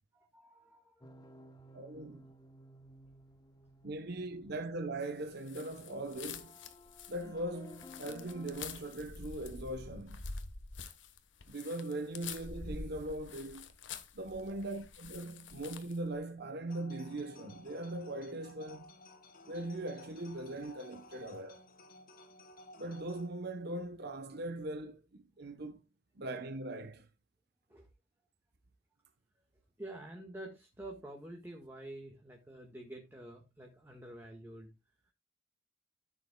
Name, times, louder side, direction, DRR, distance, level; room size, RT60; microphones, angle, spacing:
voice 1, 0.1-1.0 27.7-27.9 29.8-34.7, right 1 dB, 10° right, 1.6 m, -48 dB
sound 1, 1.0-8.6, left 2 dB, 20° left, 0.9 m, -56 dB
voice 2, 1.7-2.3 3.8-6.6 7.1-10.2 11.5-13.7 14.1-18.9 19.5-21.6 22.8-25.8 26.2-27.1, right 1 dB, 60° right, 0.9 m, -40 dB
sound 2, 5.4-16.1, left 4 dB, 75° left, 1.2 m, -47 dB
sound 3, 16.7-23.3, left 1 dB, 50° left, 1.6 m, -55 dB
13.5 x 7.2 x 2.2 m
head